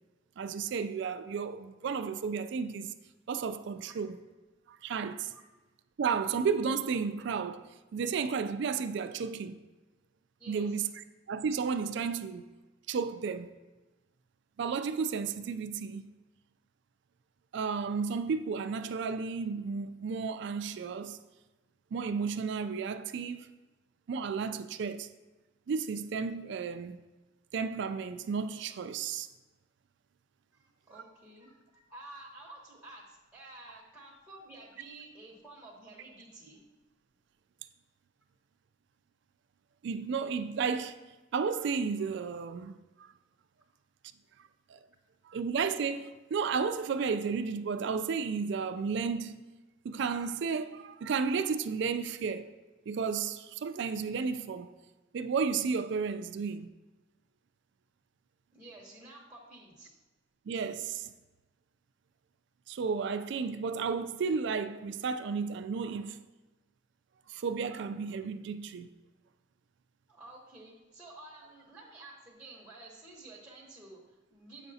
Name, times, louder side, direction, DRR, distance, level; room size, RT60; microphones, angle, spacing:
voice 1, 0.4-2.9 3.3-4.2 4.7-5.3 6.0-9.6 10.5-10.9 11.3-12.4 12.9-13.5 14.6-16.0 17.5-21.2 21.9-23.5 24.1-25.1 25.7-27.0 27.5-29.3 39.8-41.0 41.3-43.1 44.7-44.8 45.3-49.5 49.8-52.5 52.9-54.7 55.1-56.7 60.5-61.1 62.7-66.2 67.3-68.9, right 5 dB, 60° right, 0.3 m, -33 dB
voice 2, 10.4-10.8 30.5-36.6 45.2-45.3 58.5-59.9 70.1-74.7, right 2 dB, 5° right, 0.9 m, -51 dB
7.6 x 5.9 x 2.7 m
head